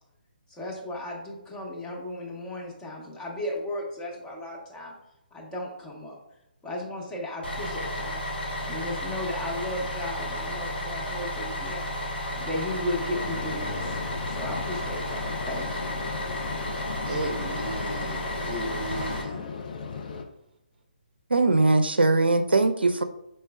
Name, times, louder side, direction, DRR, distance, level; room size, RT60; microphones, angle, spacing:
voice 1, 0.5-4.9 5.3-6.2 6.6-8.2 8.6-11.9 12.3-14.0 14.3-15.9, left 1 dB, 10° left, -3 dB, 0.8 m, -35 dB
Bus, 7.4-19.2, equal, 85° left, 1.0 m, -33 dB
sound 1, 13.1-20.2, left 5 dB, 55° left, 0.5 m, -36 dB
voice 2, 17.1-19.5, right 1 dB, 45° right, 2 dB, 0.6 m, -34 dB
voice 3, 21.3-23.0, right 3 dB, 85° right, 9 dB, 0.4 m, -21 dB
5.3 x 3.2 x 2.2 m, 0.84 s
figure-of-eight pair, 140°, 5 cm